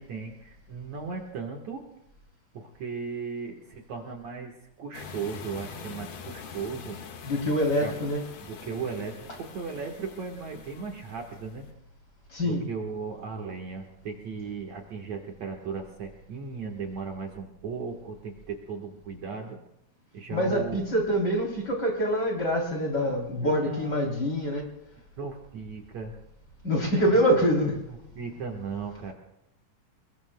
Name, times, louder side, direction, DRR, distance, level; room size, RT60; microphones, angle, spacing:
voice 1, 0.0-1.8 2.5-7.0 7.8-7.9 8.5-11.7 12.4-19.6 20.1-20.8 23.4-24.0 25.2-26.1 28.2-29.1, right 5 dB, 60° right, 1 dB, 2.3 m, -36 dB
sound 1, 4.9-11.7, left 6 dB, 85° left, 3.6 m, -44 dB
voice 2, 7.2-8.2 12.3-12.6 20.3-24.7 26.6-28.0, equal, 30° left, -1 dB, 3.5 m, -25 dB
28.5 x 21.5 x 2.2 m, 0.85 s
omnidirectional pair, 4.2 m